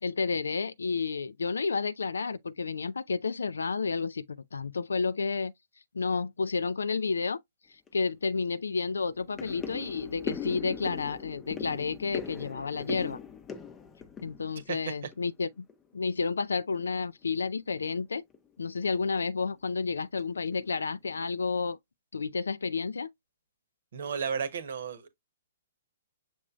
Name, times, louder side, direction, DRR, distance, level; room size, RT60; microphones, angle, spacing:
voice 1, 0.0-4.2 4.5-5.5 5.9-7.4 7.9-13.2 14.2-15.7 15.9-18.2 18.6-21.8 22.1-23.1, left 4 dB, 85° left, 0.4 m, -31 dB
sound 1, 7.9-8.0 8.4-8.5 8.9-15.4 15.7-16.3 16.7-16.9 17.2-17.3 17.8-18.0 18.3-18.5 19.0-19.5 20.0-20.2 20.5-21.2 21.6-21.7, left 6 dB, 20° left, 0.5 m, -41 dB
voice 2, 23.9-25.1, right 6 dB, 65° right, 1.0 m, -33 dB
6.2 x 3.0 x 2.4 m
hypercardioid pair, 130°, 0 cm